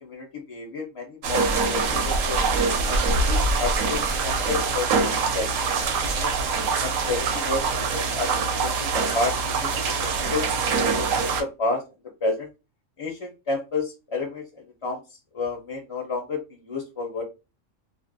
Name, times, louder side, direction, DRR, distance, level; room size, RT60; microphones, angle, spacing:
voice 1, 0.0-2.4 2.9-5.1 5.3-5.8 6.2-6.3 6.8-10.4 10.9-11.8 12.2-12.5 13.0-15.0 15.3-17.2, left 3 dB, 45° left, 0 dB, 0.4 m, -31 dB
sound 1, 1.2-11.4, right 4 dB, 80° right, 0.9 m, -24 dB
2.4 x 2.1 x 2.6 m, 0.28 s
omnidirectional pair, 1.4 m